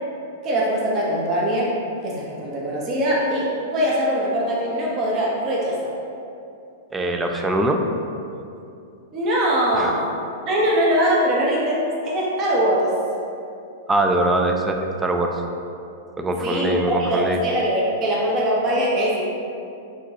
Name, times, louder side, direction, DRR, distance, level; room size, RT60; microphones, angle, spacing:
voice 1, 0.4-1.7 2.0-5.9 9.1-10.1 10.5-12.9 16.4-19.2, equal, 35° right, -4 dB, 0.8 m, -22 dB
voice 2, 6.9-7.8 9.7-9.9 13.9-15.4 16.2-17.4, right 1 dB, 15° right, 3 dB, 0.4 m, -22 dB
4.8 x 3.1 x 2.7 m, 2.6 s
hypercardioid pair, 105°, 0 cm